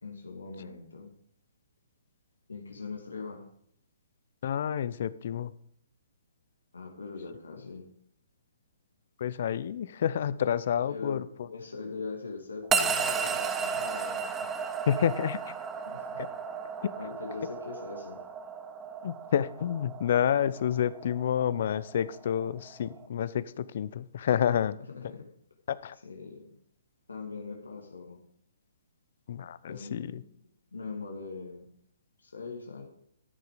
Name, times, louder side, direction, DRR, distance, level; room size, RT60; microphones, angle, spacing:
voice 1, 0.0-1.1 2.5-3.5 6.7-7.8 10.8-14.4 15.9-16.2 17.0-18.2 24.5-25.3 26.0-26.5 27.1-28.2 29.7-30.2 30.7-31.7 32.2-32.9, left 4 dB, 90° left, 1 dB, 2.3 m, -41 dB
voice 2, 4.4-5.5 9.2-11.2 14.9-15.4 16.2-16.3 16.8-16.9 19.0-24.7 25.7-25.9 29.3-30.1, left 9 dB, 55° left, 17 dB, 0.6 m, -29 dB
sound 1, 12.7-23.1, right 6 dB, 15° right, 0.8 m, -34 dB
13.5 x 6.7 x 5.1 m, 0.67 s
hypercardioid pair, 140°, 0 cm